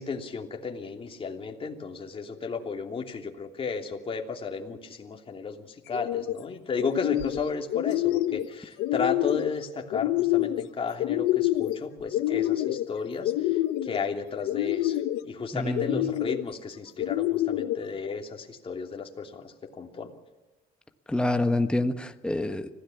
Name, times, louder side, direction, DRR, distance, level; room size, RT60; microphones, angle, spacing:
voice 1, 0.0-20.1, left 5 dB, 35° left, 2 dB, 3.0 m, -34 dB
sound 1, 5.9-6.4 6.8-7.4 7.7-8.5 8.8-9.5 9.9-10.7 11.0-11.8 12.1-12.9 13.2-14.0 14.5-15.2 15.7-16.4 17.0-17.8, left 14 dB, 90° left, 1.0 m, -27 dB
voice 2, 15.5-16.1 21.1-22.7, left 2 dB, 5° left, 7 dB, 1.4 m, -27 dB
25.5 x 16.5 x 7.1 m, 1.1 s
cardioid pair, 110°, 17 cm